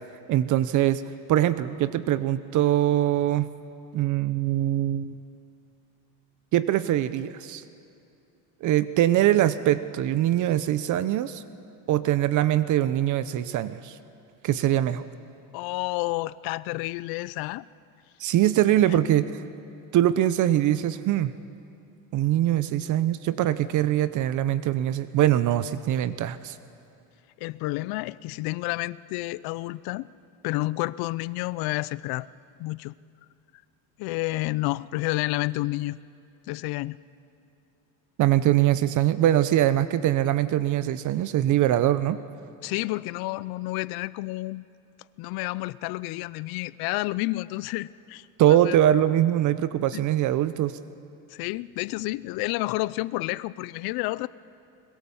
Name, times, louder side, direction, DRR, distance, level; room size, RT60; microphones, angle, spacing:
voice 1, 0.3-1.0 1.3-3.5 3.9-5.2 6.5-7.6 8.6-11.4 11.9-14.0 14.4-15.0 18.2-19.4 19.9-21.3 22.1-26.6 38.2-42.2 48.4-50.8, right 12 dB, 50° right, 14 dB, 0.7 m, -23 dB
voice 2, 15.5-17.7 18.8-19.0 27.4-30.1 30.4-32.3 32.6-32.9 34.0-36.0 36.5-37.0 42.6-44.7 45.2-48.8 49.9-50.0 51.3-54.3, left 20 dB, 70° left, 19 dB, 0.6 m, -30 dB
22.0 x 21.5 x 7.1 m, 2.6 s
cardioid pair, 130°, 39 cm